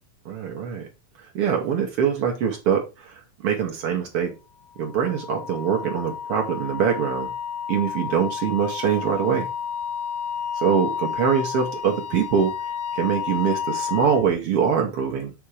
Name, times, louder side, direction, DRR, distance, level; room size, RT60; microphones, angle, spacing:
voice 1, 0.2-0.9 1.2-4.3 4.8-7.3 7.7-9.5 10.6-12.5 12.9-15.3, right 7 dB, 75° right, 2 dB, 1.3 m, -23 dB
Wind instrument woodwind instrument, 4.8-14.3, left 7 dB, 90° left, 2.4 m, -31 dB
7.1 x 3.4 x 4.8 m, 0.27 s
omnidirectional pair, 4.0 m